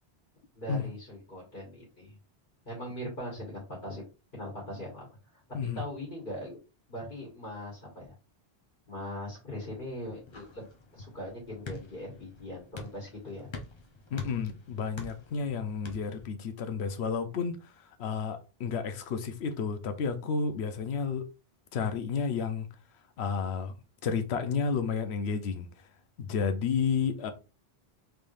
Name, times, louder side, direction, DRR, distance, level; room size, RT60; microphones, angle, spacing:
voice 1, 0.5-2.2 2.6-4.0 4.3-5.0 5.3-5.4 5.7-6.6 6.9-8.1 8.9-13.5, equal, 55° left, 1.8 m, -40 dB
sound 1, 9.6-16.3, left 3 dB, 30° left, 0.6 m, -46 dB
voice 2, 14.1-17.7 18.0-21.3 21.7-22.7 23.2-23.7 24.0-25.7 26.2-27.3, left 5 dB, 85° left, 0.9 m, -31 dB
3.6 x 3.3 x 2.5 m
omnidirectional pair, 1.1 m